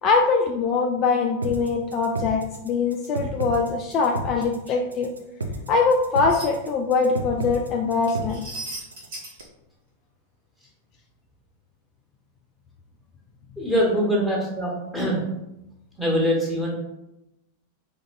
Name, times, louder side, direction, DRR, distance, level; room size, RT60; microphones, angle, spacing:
voice 1, 0.0-5.1 5.7-8.4, left 4 dB, 35° left, 1 dB, 0.3 m, -22 dB
sound 1, 1.4-9.4, right 1 dB, 75° right, 0.4 m, -32 dB
sound 2, 6.3-6.5 8.1-9.4, right 2 dB, 50° right, 1.3 m, -36 dB
voice 2, 13.6-15.2 16.0-16.7, equal, 5° right, -4 dB, 1.2 m, -23 dB
3.8 x 2.9 x 2.6 m, 0.91 s
figure-of-eight pair, 90°, 0 cm